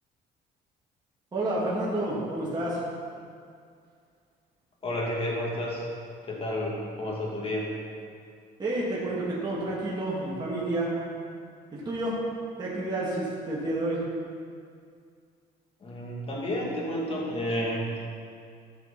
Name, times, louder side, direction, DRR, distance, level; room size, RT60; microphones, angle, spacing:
voice 1, 1.3-2.8 8.6-10.9 11.7-12.2 12.6-14.0, right 1 dB, 25° right, -7 dB, 2.3 m, -29 dB
voice 2, 4.8-5.9 6.2-7.7 15.8-18.0, left 1 dB, 35° left, -3 dB, 2.4 m, -31 dB
13.5 x 6.7 x 4.2 m, 2.2 s
cardioid pair, 110°, 17 cm